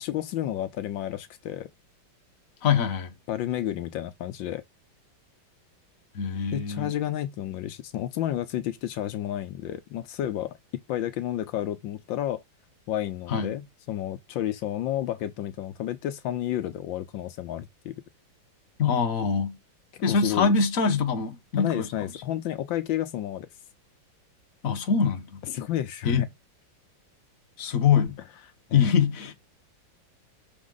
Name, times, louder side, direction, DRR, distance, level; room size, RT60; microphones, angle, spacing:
voice 1, 0.0-1.7 3.3-4.6 6.5-10.6 10.9-12.4 12.9-18.0 20.1-20.5 21.6-23.5 25.4-26.3 28.7-28.9, left 12 dB, 85° left, 1.5 m, -31 dB
voice 2, 2.6-3.1 6.1-6.9 13.3-13.6 18.8-19.6 20.0-21.9 24.6-25.4 26.0-26.2 27.6-28.2 28.7-29.3, left 6 dB, 50° left, 1.5 m, -24 dB
6.1 x 4.6 x 3.9 m
omnidirectional pair, 2.1 m